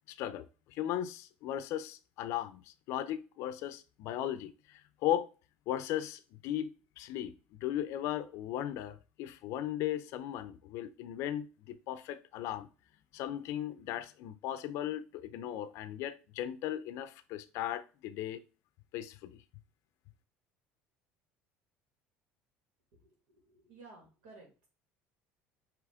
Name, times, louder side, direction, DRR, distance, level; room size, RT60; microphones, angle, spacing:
voice 1, 0.1-5.3 5.7-6.7 7.0-7.3 7.6-12.7 13.1-18.4 18.9-19.4, left 11 dB, 65° left, 0.5 m, -37 dB
voice 2, 23.0-24.7, right 3 dB, 85° right, 1.9 m, -56 dB
4.9 x 3.0 x 3.6 m
cardioid pair, 120°, 5 cm